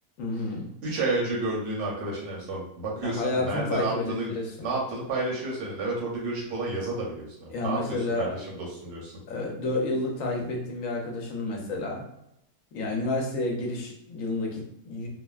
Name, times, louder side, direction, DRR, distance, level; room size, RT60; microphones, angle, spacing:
voice 1, 0.2-0.7 3.0-4.7 7.5-8.3 9.3-12.0 12.7-15.1, left 2 dB, 65° left, 0 dB, 0.9 m, -30 dB
voice 2, 0.8-4.3 4.6-9.2, right 2 dB, 85° right, -4 dB, 1.5 m, -31 dB
3.3 x 2.1 x 2.3 m, 0.79 s
omnidirectional pair, 1.8 m